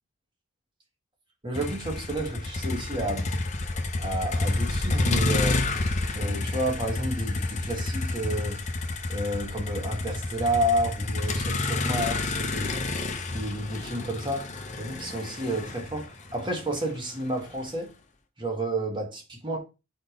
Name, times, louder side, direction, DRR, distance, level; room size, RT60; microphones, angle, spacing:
voice 1, 1.4-3.3 4.0-5.6 6.1-8.6 9.1-12.7 13.3-14.4 14.7-17.9 18.4-19.6, right 1 dB, 20° right, 1.6 m, -30 dB
Motor vehicle (road), 1.5-17.7, left 2 dB, 35° left, 0.8 m, -29 dB
4.8 x 4.3 x 5.1 m
head